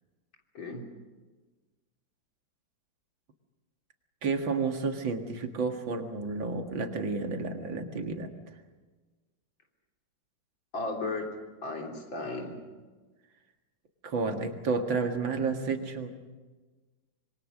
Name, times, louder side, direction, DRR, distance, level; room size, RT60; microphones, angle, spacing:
voice 1, 4.2-8.3 14.0-16.1, right 4 dB, 90° right, 5 dB, 2.7 m, -31 dB
voice 2, 10.7-11.2 11.6-12.6, left 3 dB, 85° left, 1 dB, 4.3 m, -35 dB
25.5 x 23.0 x 6.5 m, 1.3 s
omnidirectional pair, 2.0 m